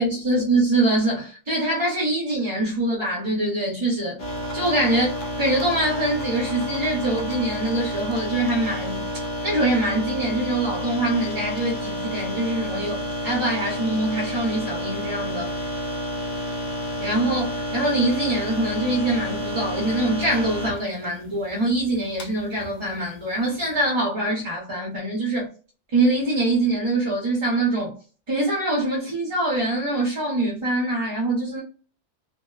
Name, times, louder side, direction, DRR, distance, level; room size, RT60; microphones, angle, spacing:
voice 1, 0.0-4.2 4.5-9.0 9.4-15.5 17.0-25.5 25.9-28.0 28.3-31.6, right 1 dB, 30° right, 0.7 m, -24 dB
sound 1, 4.2-23.8, equal, 80° left, 1.0 m, -30 dB
2.7 x 2.1 x 2.3 m
omnidirectional pair, 1.2 m